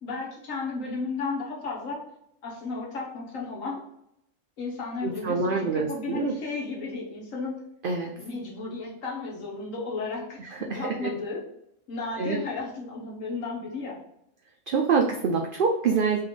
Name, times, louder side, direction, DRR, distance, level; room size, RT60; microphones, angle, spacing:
voice 1, 0.0-2.0 2.4-3.8 4.6-7.6 8.2-11.4 11.9-14.0, left 3 dB, 85° left, -2 dB, 1.5 m, -34 dB
voice 2, 5.0-6.3 7.8-8.1 10.4-11.1 12.2-12.4 14.7-16.2, right 5 dB, 55° right, 1 dB, 0.6 m, -26 dB
3.9 x 3.3 x 3.7 m, 0.78 s
omnidirectional pair, 1.3 m